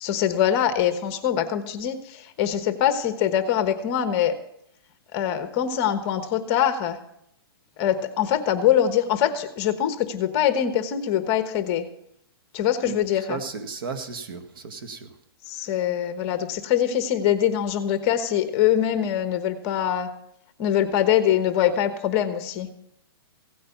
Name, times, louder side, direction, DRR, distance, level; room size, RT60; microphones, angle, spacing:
voice 1, 0.0-2.0 2.4-4.3 5.1-7.0 7.8-11.9 12.5-13.4 15.5-20.1 20.6-22.7, left 10 dB, 30° left, 9 dB, 1.1 m, -23 dB
voice 2, 13.3-15.1, right 5 dB, 60° right, 11 dB, 1.7 m, -34 dB
16.0 x 8.6 x 5.7 m, 0.74 s
hypercardioid pair, 155°, 13 cm